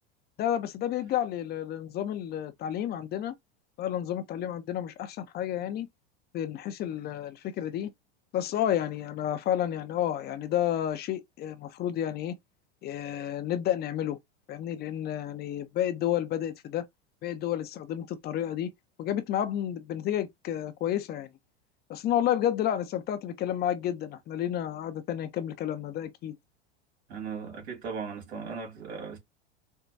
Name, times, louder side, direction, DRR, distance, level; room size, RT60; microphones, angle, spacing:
voice 1, 0.4-3.3 3.8-5.9 6.3-7.9 8.3-12.4 12.8-14.2 14.5-16.9 17.2-18.7 19.0-21.3 21.9-26.3, left 11 dB, 30° left, 0.6 m, -31 dB
voice 2, 27.1-29.2, right 5 dB, 85° right, 2.4 m, -37 dB
4.5 x 2.2 x 2.5 m
supercardioid pair, 120°, 32 cm